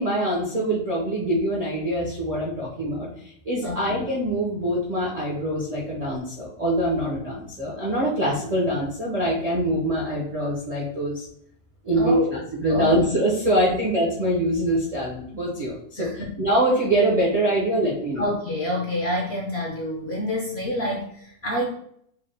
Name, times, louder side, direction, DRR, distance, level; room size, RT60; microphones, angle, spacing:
voice 1, 0.0-11.3 11.8-16.1 16.4-18.2, right 1 dB, 55° right, -5 dB, 0.4 m, -24 dB
voice 2, 3.6-4.1 12.0-12.3 12.7-12.9 13.7-13.8 16.0-16.3 18.2-21.7, left 1 dB, 65° left, -1 dB, 0.6 m, -28 dB
4.7 x 2.1 x 3.3 m, 0.68 s
omnidirectional pair, 1.6 m